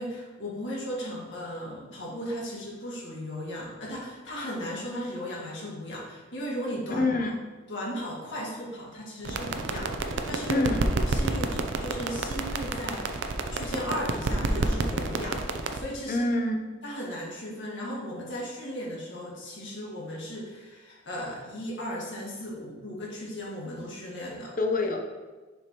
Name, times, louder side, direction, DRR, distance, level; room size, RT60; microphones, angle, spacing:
voice 1, 0.0-7.3 7.7-10.7 11.0-16.2 16.8-24.5, equal, 75° left, -4 dB, 1.8 m, -36 dB
voice 2, 7.0-7.3 10.5-10.9 16.1-16.7 24.6-25.0, left 2 dB, 45° left, 3 dB, 0.7 m, -26 dB
sound 1, 9.2-15.8, right 2 dB, 75° right, 0.5 m, -29 dB
6.7 x 5.1 x 3.0 m, 1.3 s
head